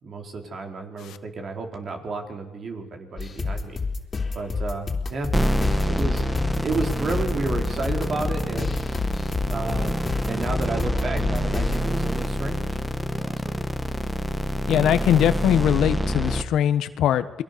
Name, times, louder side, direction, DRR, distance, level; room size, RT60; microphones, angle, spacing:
voice 1, 0.0-3.8 4.3-5.3 5.9-6.2 6.6-8.8 9.5-13.6, right 3 dB, 50° right, 4 dB, 4.4 m, -32 dB
sound 1, 3.2-11.8, left 4 dB, 35° left, 3.3 m, -29 dB
sound 2, 5.3-16.4, equal, 5° right, 1.7 m, -26 dB
voice 2, 14.7-17.4, left 10 dB, 80° left, 12 dB, 1.3 m, -21 dB
29.5 x 22.0 x 6.9 m, 0.92 s
cardioid pair, 90°, 0 cm